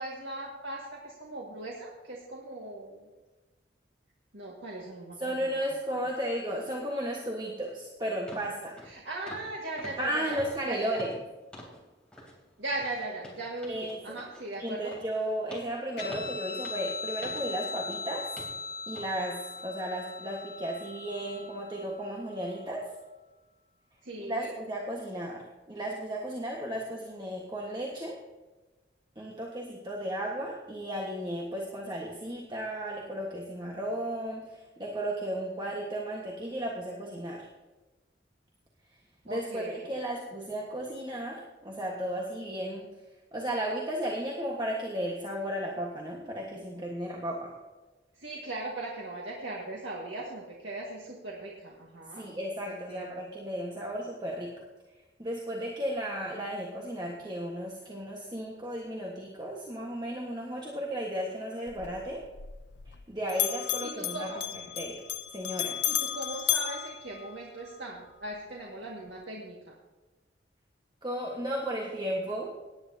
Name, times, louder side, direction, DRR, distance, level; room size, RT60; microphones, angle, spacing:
voice 1, 0.0-3.0 4.3-5.5 8.9-10.4 10.7-11.0 12.6-14.9 24.0-24.6 39.3-40.0 48.2-52.2 52.7-53.3 63.8-64.4 65.9-69.8, right 2 dB, 75° right, -3 dB, 1.9 m, -39 dB
voice 2, 5.2-8.8 10.0-11.1 13.7-14.1 14.6-18.3 18.9-22.8 24.2-28.2 29.1-37.5 39.2-42.9 43.3-47.5 52.1-54.5 55.2-62.2 62.9-64.3 64.7-65.0 65.3-65.8 71.0-72.5, right 1 dB, 25° right, -2 dB, 1.4 m, -34 dB
sound 1, 7.6-7.7 8.3-8.5 8.8-9.0 9.3-9.5 9.8-11.8 12.1-12.4 12.7-18.0 18.4-18.6 18.9-19.1 19.6-19.7, equal, 5° left, 3.1 m, -47 dB
Guitar, 16.0-22.9, left 4 dB, 60° left, 1.6 m, -40 dB
Bell, 61.7-63.0 63.3-67.8, left 12 dB, 75° left, 0.6 m, -33 dB
18.0 x 9.9 x 2.8 m, 1.2 s
head